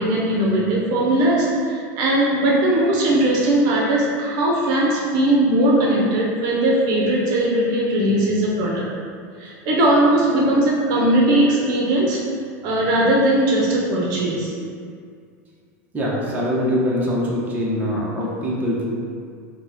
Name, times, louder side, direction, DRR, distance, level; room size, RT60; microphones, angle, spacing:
voice 1, 0.0-8.8 9.4-12.2 12.6-14.5, right 1 dB, 50° right, -3 dB, 0.8 m, -19 dB
voice 2, 15.9-18.8, equal, 20° right, -5 dB, 0.8 m, -23 dB
4.9 x 2.2 x 3.5 m, 2.2 s
supercardioid pair, 125°, 8 cm